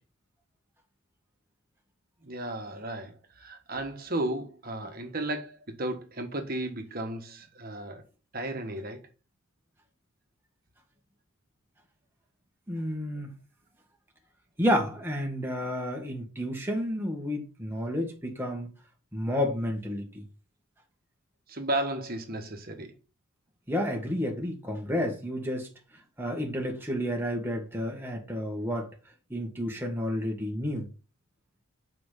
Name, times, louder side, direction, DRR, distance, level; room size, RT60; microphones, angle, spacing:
voice 1, 2.2-8.0 8.3-9.0 21.5-22.9, right 1 dB, 45° right, 1.5 m, -34 dB
voice 2, 12.7-13.3 14.6-18.7 19.1-20.2 23.7-25.7 26.2-28.9 29.3-30.9, equal, 10° right, 1.7 m, -30 dB
6.0 x 5.1 x 5.8 m
head